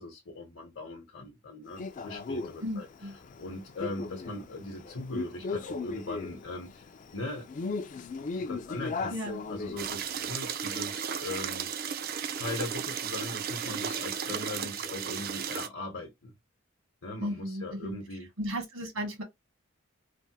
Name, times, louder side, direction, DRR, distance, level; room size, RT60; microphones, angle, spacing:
voice 1, 0.0-2.9 3.3-7.5 8.3-9.2 9.5-11.7 12.3-16.3 17.0-18.3, left 2 dB, 60° left, 0.9 m, -39 dB
Male speech man speaking, 1.8-10.3, left 4 dB, 35° left, 0.3 m, -38 dB
voice 2, 2.6-3.1 9.1-9.4 17.2-19.2, equal, 75° right, 1.2 m, -35 dB
sound 1, 9.8-15.7, right 7 dB, 45° right, 0.3 m, -34 dB
3.3 x 2.1 x 2.8 m
head